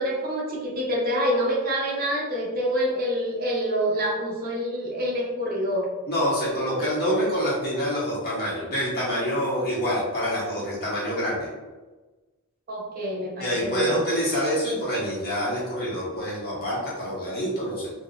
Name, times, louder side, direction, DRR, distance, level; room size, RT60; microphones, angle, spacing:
voice 1, 0.0-5.9 12.7-13.9, equal, 40° right, -3 dB, 0.7 m, -26 dB
voice 2, 6.1-11.5 13.4-17.9, equal, 45° left, -6 dB, 1.1 m, -26 dB
3.7 x 2.3 x 2.3 m, 1.2 s
head